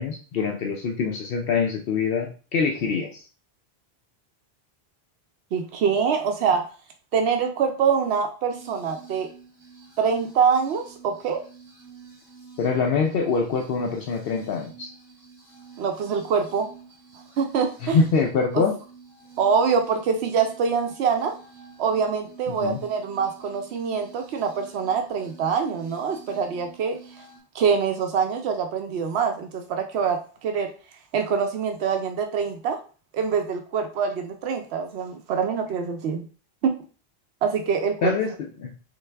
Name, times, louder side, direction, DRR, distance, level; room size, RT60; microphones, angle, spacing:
voice 1, 0.0-3.2 12.6-14.9 17.8-18.8 22.5-22.8 38.0-38.3 38.6-38.7, left 5 dB, 70° left, 2 dB, 0.8 m, -24 dB
voice 2, 5.5-6.7 7.1-9.3 10.0-11.4 15.8-16.7 17.4-18.0 18.5-18.6 19.4-21.3 21.8-27.0 27.5-30.7 31.1-32.8 33.1-36.2 36.6-36.7 37.4-38.1, right 6 dB, 85° right, 5 dB, 0.9 m, -24 dB
sound 1, 8.5-27.4, right 6 dB, 40° right, 2.1 m, -49 dB
4.0 x 3.3 x 3.3 m, 0.37 s
omnidirectional pair, 1.1 m